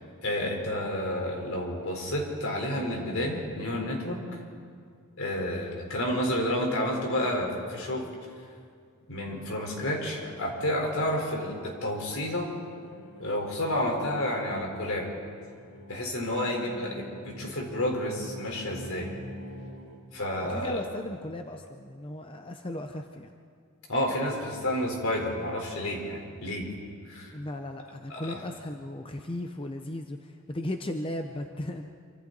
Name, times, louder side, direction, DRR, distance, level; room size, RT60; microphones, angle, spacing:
voice 1, 0.2-4.4 5.2-8.1 9.1-12.5 13.2-15.1 15.9-19.1 20.1-20.9 23.9-26.7 27.1-27.4 28.1-28.4, left 1 dB, 70° left, 1 dB, 4.1 m, -30 dB
sound 1, 10.2-20.0, equal, 90° left, 3.8 m, -46 dB
voice 2, 20.5-23.3 27.3-31.9, left 1 dB, 25° left, 5 dB, 0.7 m, -36 dB
26.5 x 25.0 x 4.0 m, 2.2 s
head